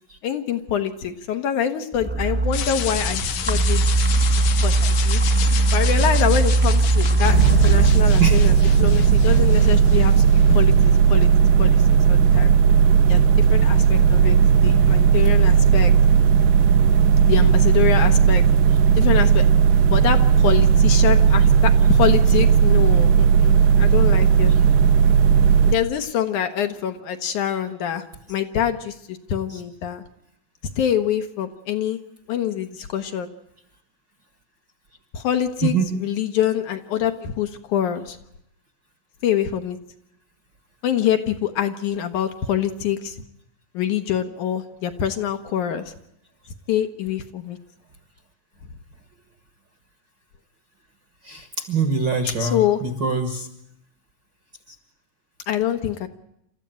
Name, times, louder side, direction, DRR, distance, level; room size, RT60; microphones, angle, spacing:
voice 1, 0.2-3.9 4.4-5.2 5.7-11.3 11.6-12.5 13.1-13.2 13.5-15.9 17.2-18.4 19.0-19.5 19.9-24.5 25.7-28.0 28.3-30.0 30.8-32.0 32.3-33.3 35.1-38.2 39.2-39.8 40.8-43.2 43.7-45.9 46.7-47.6 52.4-52.8 55.5-56.1, left 9 dB, 70° left, 7 dB, 2.5 m, -25 dB
sound 1, 1.9-10.5, right 2 dB, 10° right, 0.5 m, -21 dB
sound 2, 2.5-10.6, left 10 dB, 85° left, 3.1 m, -32 dB
sound 3, 7.2-25.7, right 7 dB, 75° right, 2.6 m, -15 dB
voice 2, 35.6-36.0 51.2-53.5, right 4 dB, 45° right, 7 dB, 1.6 m, -24 dB
28.0 x 14.0 x 9.1 m, 0.79 s
omnidirectional pair, 4.0 m